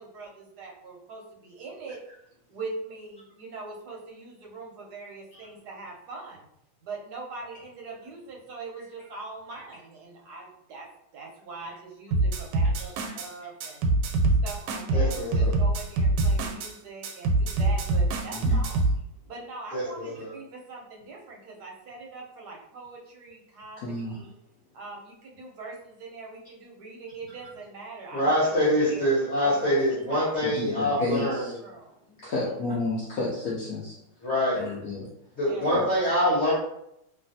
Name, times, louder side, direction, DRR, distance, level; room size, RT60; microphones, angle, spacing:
voice 1, 0.0-2.0 2.5-6.4 6.8-10.9 11.1-13.8 14.4-18.8 19.3-24.3 24.7-29.1 29.4-29.8 30.1-32.4 35.4-35.8, right 3 dB, 70° right, -2 dB, 1.0 m, -42 dB
sound 1, 12.1-13.3 13.6-16.7 17.0-19.0, right 2 dB, 90° right, 1.4 m, -24 dB
voice 2, 12.8-13.1 18.3-18.7 23.8-24.2 30.4-31.6 32.2-34.0 34.5-35.1 35.7-35.9, left 2 dB, 80° left, -5 dB, 0.8 m, -32 dB
voice 3, 14.9-15.5 19.7-20.3 28.1-31.5 34.2-34.6 35.4-36.5, equal, 45° left, -10 dB, 1.2 m, -25 dB
3.2 x 2.4 x 2.6 m, 0.77 s
omnidirectional pair, 2.3 m